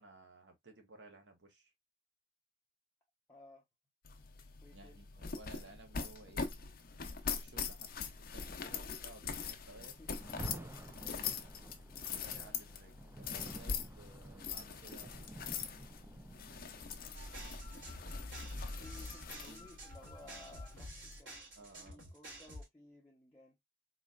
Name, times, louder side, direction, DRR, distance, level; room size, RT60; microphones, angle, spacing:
voice 1, 0.0-1.7 4.7-6.7 7.2-10.0 10.3-10.7 12.1-15.4 16.3-17.1 17.6-17.9 19.4-19.7 20.2-20.5 21.5-22.1, right 2 dB, 70° right, 1.2 m, -58 dB
voice 2, 3.3-3.6 4.6-5.0 9.8-10.4 11.7-11.8 12.3-12.6 18.8-23.6, left 1 dB, 10° left, 0.8 m, -58 dB
sound 1, 4.1-21.2, left 6 dB, 55° left, 0.6 m, -43 dB
Rain, 10.1-19.2, right 1 dB, 15° right, 0.3 m, -52 dB
sound 2, 17.1-22.6, equal, 85° right, 2.8 m, -47 dB
4.1 x 3.0 x 2.4 m
head